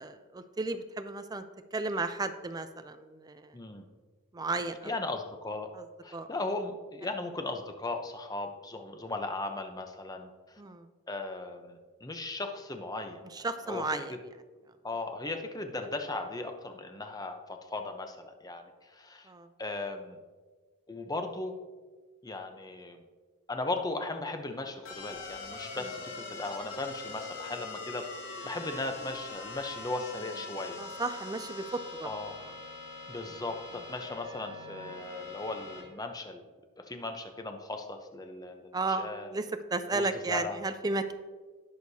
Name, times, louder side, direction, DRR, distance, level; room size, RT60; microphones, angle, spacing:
voice 1, 0.0-1.4 1.7-3.5 4.3-4.9 5.8-5.9 6.1-6.3 10.6-10.9 13.3-14.2 19.3-19.5 30.8-32.1 38.7-41.1, right 3 dB, 15° right, 10 dB, 0.4 m, -34 dB
voice 2, 3.5-3.9 4.9-5.7 6.0-10.6 11.1-13.8 14.8-19.3 19.6-20.2 20.9-21.5 22.2-23.0 23.5-28.1 28.4-30.8 32.0-32.3 33.1-36.5 36.8-39.3 39.9-40.6, left 2 dB, 15° left, 5 dB, 0.7 m, -37 dB
sound 1, 24.8-35.8, left 3 dB, 55° left, 2.4 m, -43 dB
18.5 x 6.5 x 2.8 m, 1.4 s
head